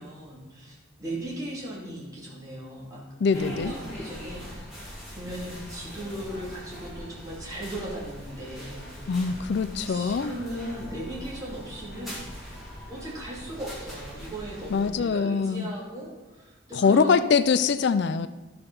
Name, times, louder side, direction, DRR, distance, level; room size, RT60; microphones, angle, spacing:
voice 1, 0.0-3.0 3.3-4.8 5.1-9.3 9.8-12.2 12.9-17.3, right 1 dB, 15° right, -6 dB, 2.7 m, -38 dB
voice 2, 3.2-3.7 9.1-10.3 14.7-15.7 16.8-18.3, left 5 dB, 55° left, 13 dB, 0.4 m, -23 dB
sound 1, 3.3-14.9, equal, ahead, 2.9 m, -41 dB
12.5 x 6.8 x 5.4 m, 1.2 s
head